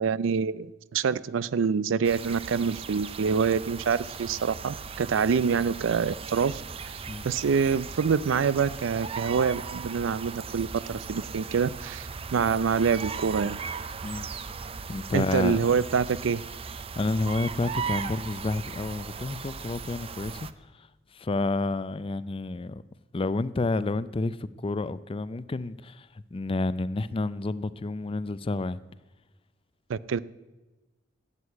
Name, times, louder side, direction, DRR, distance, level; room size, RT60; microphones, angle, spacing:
voice 1, 0.0-6.6 6.9-7.0 7.2-13.6 15.1-16.4 29.9-30.2, right 6 dB, 80° right, 0.4 m, -26 dB
sound 1, 2.0-20.5, right 5 dB, 30° right, 0.5 m, -38 dB
voice 2, 14.9-15.8 17.0-20.5 20.7-20.9 21.1-22.8 23.1-28.8, left 2 dB, 30° left, 0.4 m, -30 dB
12.5 x 8.4 x 8.4 m
head